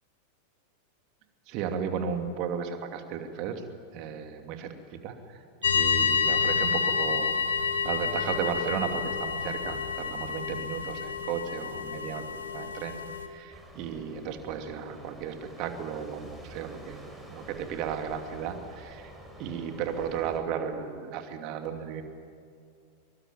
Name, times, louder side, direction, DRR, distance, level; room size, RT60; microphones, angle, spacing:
voice 1, 1.5-3.6 3.9-4.7 5.0-5.2 5.7-7.4 7.8-12.2 12.5-19.1 19.4-22.0, right 7 dB, 40° right, 6 dB, 2.7 m, -34 dB
sound 1, 5.6-13.3, left 6 dB, 70° left, 1.7 m, -29 dB
sound 2, 13.5-20.4, right 1 dB, ahead, 5.1 m, -48 dB
24.0 x 23.0 x 9.4 m, 2.3 s
figure-of-eight pair, 90°, 0 cm